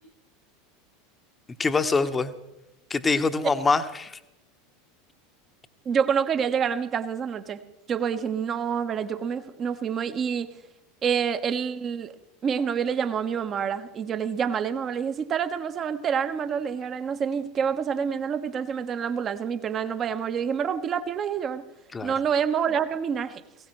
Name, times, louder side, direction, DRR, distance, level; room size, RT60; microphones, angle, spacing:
voice 1, 1.6-2.3 2.9-4.2 21.9-22.1, left 4 dB, 15° left, 10 dB, 1.1 m, -24 dB
voice 2, 5.8-7.6 7.9-10.5 11.0-12.1 12.4-21.6 22.0-23.4, right 7 dB, 30° right, 10 dB, 1.1 m, -27 dB
20.0 x 17.5 x 3.2 m, 0.96 s
figure-of-eight pair, 80°, 0 cm